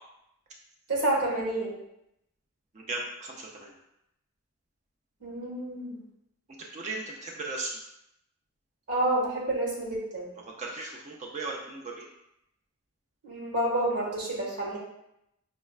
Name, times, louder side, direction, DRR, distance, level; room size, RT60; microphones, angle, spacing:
voice 1, 0.9-1.7 5.2-6.0 8.9-10.3 13.2-14.8, right 1 dB, 85° right, -3 dB, 1.3 m, -29 dB
voice 2, 2.7-3.7 6.7-7.7 10.6-12.1, right 3 dB, 30° right, -1 dB, 0.3 m, -36 dB
5.4 x 2.1 x 2.3 m, 0.82 s
head